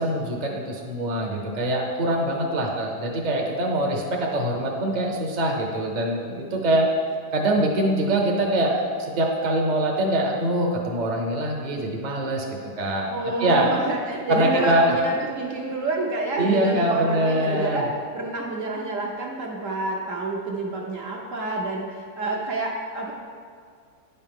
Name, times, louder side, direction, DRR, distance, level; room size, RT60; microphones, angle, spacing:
voice 1, 0.0-6.9 7.3-8.8 9.1-12.4 12.8-13.1 13.4-13.7 14.3-14.9 16.4-17.8, right 1 dB, 35° right, 0 dB, 0.7 m, -23 dB
voice 2, 13.1-17.9 18.1-23.1, right 2 dB, 60° right, -2 dB, 1.0 m, -28 dB
9.7 x 5.5 x 3.6 m, 2.1 s
omnidirectional pair, 1.8 m